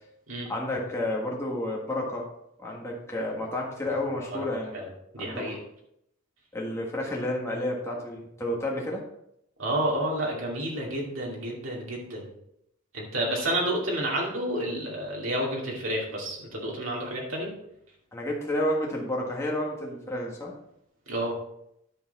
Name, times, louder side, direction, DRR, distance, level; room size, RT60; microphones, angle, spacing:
voice 1, 0.5-2.3 2.6-4.8 5.2-5.4 6.5-9.0 18.1-20.5, left 1 dB, 15° left, -2 dB, 1.5 m, -30 dB
voice 2, 5.1-5.6 9.6-12.3 12.9-17.5 21.1-21.3, right 1 dB, 70° right, -3 dB, 2.5 m, -30 dB
10.5 x 6.8 x 4.1 m, 0.78 s
head